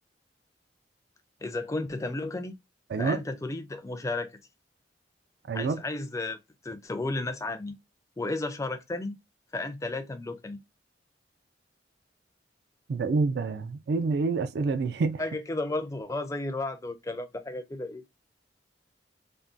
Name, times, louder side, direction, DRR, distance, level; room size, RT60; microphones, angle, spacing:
voice 1, 1.4-2.5 3.0-4.3 5.5-6.4 6.6-7.8 8.2-9.2 9.5-10.6 15.2-18.0, left 2 dB, 15° left, 0.4 m, -33 dB
voice 2, 5.5-5.8 12.9-15.2, right 4 dB, 65° right, 0.3 m, -27 dB
3.5 x 2.2 x 2.4 m
head